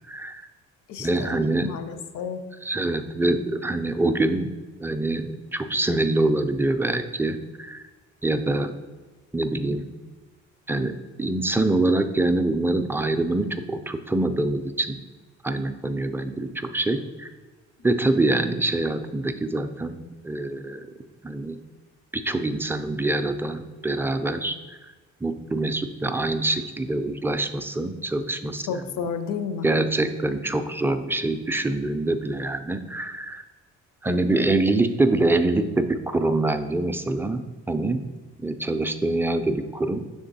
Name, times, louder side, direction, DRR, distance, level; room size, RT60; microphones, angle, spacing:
voice 1, 0.1-0.4 1.0-1.7 2.6-4.5 4.8-7.8 8.2-8.7 9.3-9.8 10.7-15.0 15.4-17.3 17.8-20.0 20.2-20.9 21.2-21.6 22.1-24.6 25.2-28.6 29.6-33.4 34.0-38.0 38.4-40.0, right 2 dB, 10° right, 8 dB, 0.3 m, -25 dB
voice 2, 0.9-2.4 28.7-29.7, left 6 dB, 80° left, 9 dB, 0.6 m, -31 dB
6.4 x 3.6 x 4.0 m, 1.3 s
cardioid pair, 90°, 30 cm